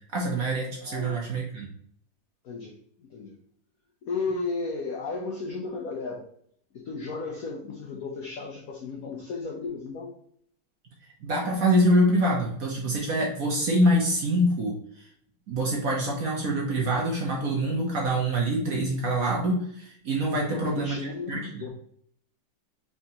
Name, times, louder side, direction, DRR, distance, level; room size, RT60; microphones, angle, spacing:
voice 1, 0.1-1.7 11.2-14.8 15.5-21.5, right 1 dB, 60° right, -1 dB, 1.0 m, -25 dB
voice 2, 0.8-1.3 2.4-3.4 4.0-6.3 6.7-10.1 20.3-21.7, left 4 dB, 85° left, 0 dB, 0.7 m, -34 dB
4.5 x 3.5 x 2.8 m, 0.66 s
omnidirectional pair, 2.3 m